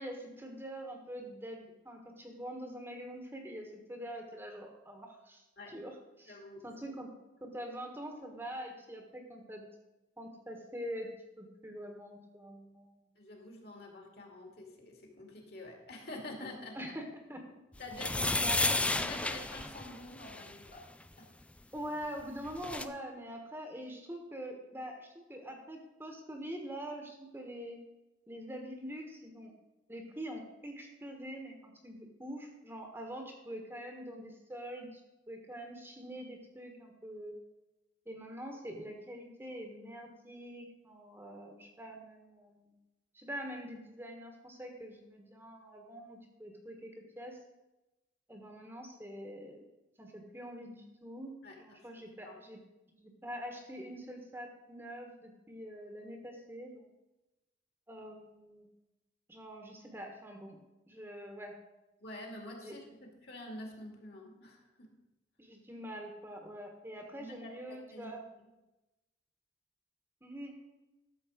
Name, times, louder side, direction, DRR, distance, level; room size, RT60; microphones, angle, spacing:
voice 1, 0.0-6.4 6.6-7.1 7.4-9.6 10.2-13.0 16.7-17.4 18.4-18.8 21.7-27.8 28.3-29.5 29.9-35.0 35.3-37.4 38.0-42.7 43.1-47.4 48.3-49.6 50.0-52.6 52.9-56.9 57.9-58.7 59.3-60.6 60.9-61.6 62.6-62.8 65.4-68.3 70.2-70.5, equal, 10° right, 2 dB, 1.3 m, -44 dB
voice 2, 6.3-6.6 13.2-16.8 17.8-18.5 18.9-20.8 21.2-21.3 51.4-51.8 52.2-52.4 62.0-64.9 67.2-68.1 68.4-68.5, left 1 dB, 55° left, 1 dB, 2.4 m, -47 dB
sound 1, 17.9-20.5 22.2-22.3 22.5-22.9, left 2 dB, 5° left, 0.3 m, -32 dB
13.0 x 7.0 x 5.0 m, 1.0 s
head